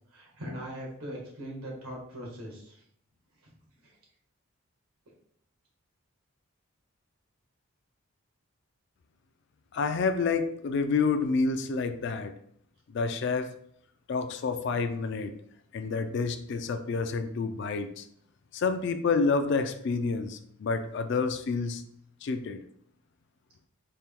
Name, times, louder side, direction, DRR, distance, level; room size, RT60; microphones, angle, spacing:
voice 1, 0.1-2.8 3.4-3.5 3.8-3.9, equal, 85° right, -3 dB, 1.5 m, -40 dB
voice 2, 9.7-12.3 12.9-13.5 14.1-15.3 15.7-18.1 18.5-21.8 22.2-22.6, left 4 dB, 55° left, 9 dB, 0.3 m, -28 dB
4.3 x 2.2 x 3.5 m, 0.65 s
head